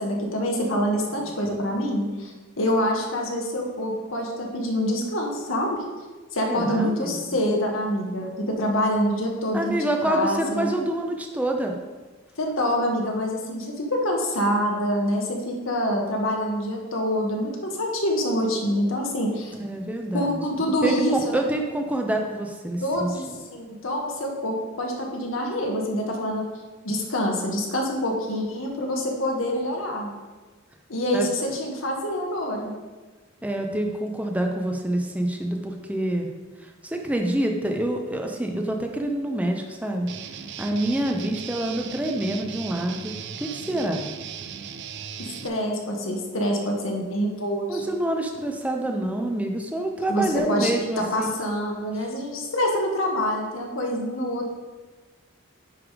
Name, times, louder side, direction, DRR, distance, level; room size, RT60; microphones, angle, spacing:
voice 1, 0.0-5.8 6.3-10.7 12.4-19.5 20.1-21.4 22.8-26.4 26.8-30.1 30.9-32.7 45.2-47.9 50.1-50.7 51.0-54.5, equal, 75° left, 0 dB, 1.2 m, -26 dB
voice 2, 6.4-7.2 9.5-11.7 19.6-23.1 31.1-31.3 33.4-36.3 36.8-40.1 40.6-44.0 47.7-51.3, right 1 dB, 5° right, 2 dB, 0.6 m, -27 dB
Guitar, 40.1-45.5, right 7 dB, 55° right, 0.4 m, -37 dB
9.7 x 3.5 x 4.8 m, 1.3 s
head